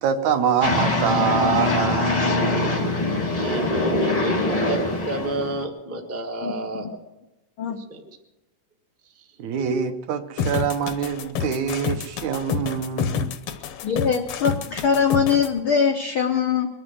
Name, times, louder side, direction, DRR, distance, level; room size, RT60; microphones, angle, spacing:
voice 1, 0.0-2.4 2.8-2.9 9.4-13.4, right 7 dB, 70° right, 7 dB, 2.0 m, -25 dB
sound 1, 0.6-5.6, left 2 dB, 25° left, 0.7 m, -23 dB
voice 2, 3.4-4.4 4.7-6.9 7.8-8.2 9.1-9.3, right 2 dB, 20° right, 0 dB, 0.3 m, -30 dB
voice 3, 6.4-6.9 7.6-7.8 13.8-16.7, left 6 dB, 85° left, 4 dB, 1.1 m, -22 dB
sound 2, 10.4-15.5, left 7 dB, 65° left, 1.5 m, -28 dB
22.0 x 7.9 x 7.8 m, 1.1 s
omnidirectional pair, 3.7 m